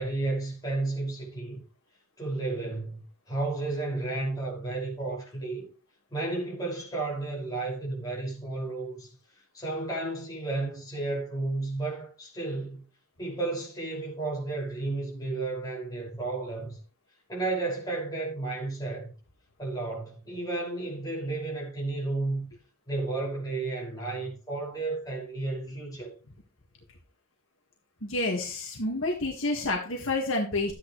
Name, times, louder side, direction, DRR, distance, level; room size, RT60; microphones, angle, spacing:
voice 1, 0.0-1.6 2.2-5.7 6.1-9.1 9.5-12.8 13.2-16.8 17.3-19.1 19.6-22.5 22.9-26.1, right 2 dB, 15° left, 5.8 m, -32 dB
voice 2, 28.0-30.7, left 2 dB, 55° left, 1.8 m, -29 dB
13.0 x 9.4 x 3.2 m
head